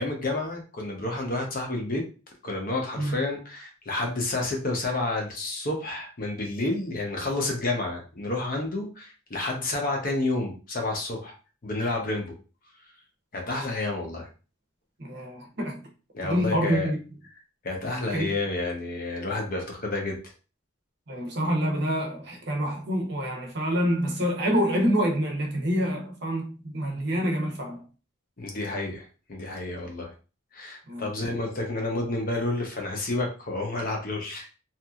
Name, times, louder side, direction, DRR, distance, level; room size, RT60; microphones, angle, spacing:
voice 1, 0.0-2.0 2.4-11.3 11.6-12.3 13.3-14.3 16.1-16.9 17.6-20.2 28.4-30.1 30.5-34.5, left 2 dB, 45° left, 0.7 m, -30 dB
voice 2, 15.0-15.8 16.2-17.0 18.1-18.3 21.1-27.8 30.9-31.1, equal, 55° right, 0.7 m, -27 dB
2.8 x 2.5 x 2.3 m
head